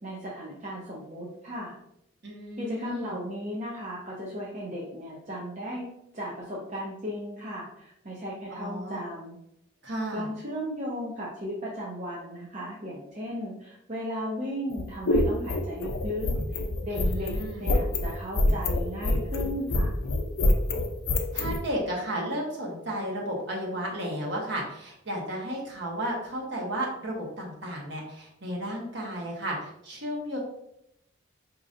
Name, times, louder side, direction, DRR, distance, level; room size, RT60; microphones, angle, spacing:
voice 1, 0.0-1.7 2.6-5.9 6.1-9.4 10.1-19.9, equal, 35° right, -5 dB, 0.6 m, -36 dB
voice 2, 2.2-3.1 8.5-9.0 9.8-10.3 16.9-17.7 21.3-30.4, equal, 55° right, -2 dB, 1.1 m, -33 dB
sound 1, 14.7-21.6, left 1 dB, 75° left, 0.6 m, -25 dB
5.0 x 2.9 x 2.5 m, 0.78 s
head